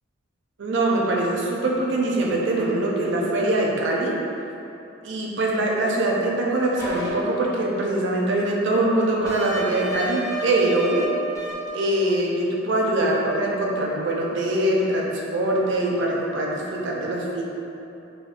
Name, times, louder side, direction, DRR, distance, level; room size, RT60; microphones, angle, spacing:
voice 1, 0.6-4.2 5.0-11.1 11.7-17.4, right 1 dB, 65° right, -3 dB, 0.4 m, -23 dB
sound 1, 6.8-7.1 9.3-11.0 11.4-11.7, right 1 dB, 15° left, 0.4 m, -31 dB
3.5 x 2.1 x 2.4 m, 2.9 s
head